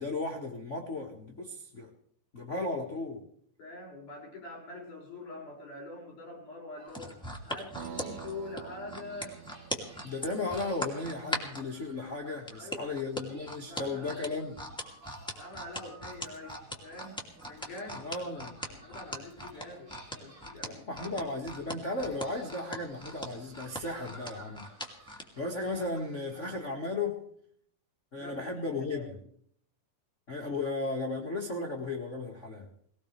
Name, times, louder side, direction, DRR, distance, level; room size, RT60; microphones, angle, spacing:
voice 1, 0.0-1.9 2.3-3.2 10.0-14.6 18.0-18.5 20.7-24.6 25.0-27.2 28.1-29.1 30.3-32.7, left 2 dB, 40° left, 1.1 m, -35 dB
voice 2, 3.6-9.4 12.6-13.0 13.7-14.5 15.4-18.4 18.7-20.9 28.1-29.1, left 2 dB, 55° left, 7.6 m, -45 dB
sound 1, 6.8-26.6, right 2 dB, 35° right, 7.3 m, -55 dB
sound 2, 6.9-11.6 12.5-25.3 25.7-25.9, equal, ahead, 1.9 m, -39 dB
sound 3, 7.8-11.5, right 8 dB, 85° right, 3.1 m, -47 dB
20.0 x 19.0 x 3.4 m
omnidirectional pair, 4.2 m